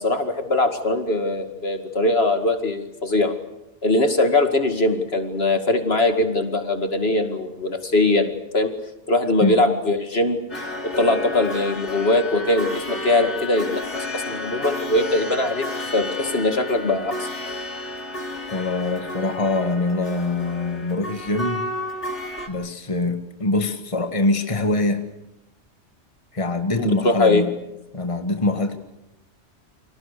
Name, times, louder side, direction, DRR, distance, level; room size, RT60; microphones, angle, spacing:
voice 1, 0.0-3.3 3.8-8.7 9.1-10.4 11.0-15.7 15.9-17.3 26.8-27.4, left 2 dB, 60° left, 6 dB, 2.5 m, -21 dB
sound 1, 10.5-22.5, left 2 dB, 80° left, 3.7 m, -31 dB
voice 2, 18.5-21.7 22.5-25.0 26.3-27.5 27.9-28.7, left 2 dB, 30° left, 6 dB, 1.8 m, -24 dB
30.0 x 25.0 x 6.8 m, 0.89 s
omnidirectional pair, 1.2 m